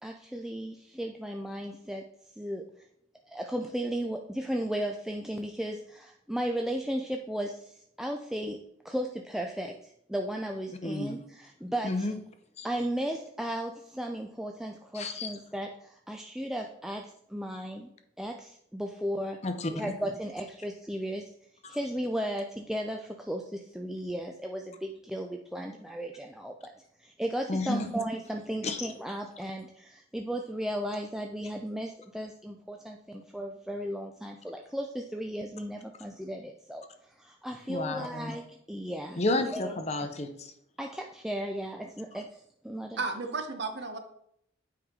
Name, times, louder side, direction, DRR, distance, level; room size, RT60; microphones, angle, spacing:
voice 1, 0.0-2.0 2.4-2.6 3.3-8.6 8.8-12.2 12.6-17.9 18.2-19.4 19.7-21.3 21.7-26.7 27.0-36.8 37.2-39.2 39.5-39.8 40.8-43.0, equal, ahead, 2 dB, 0.3 m, -35 dB
voice 2, 10.8-11.1 11.8-12.1 12.6-12.7 14.9-15.3 19.4-19.9 21.6-21.8 27.5-27.9 28.6-28.9 37.7-38.4 39.2-40.5, left 2 dB, 35° left, 7 dB, 0.6 m, -31 dB
voice 3, 43.0-44.0, right 3 dB, 55° right, 6 dB, 0.9 m, -33 dB
8.8 x 4.8 x 3.7 m, 0.72 s
head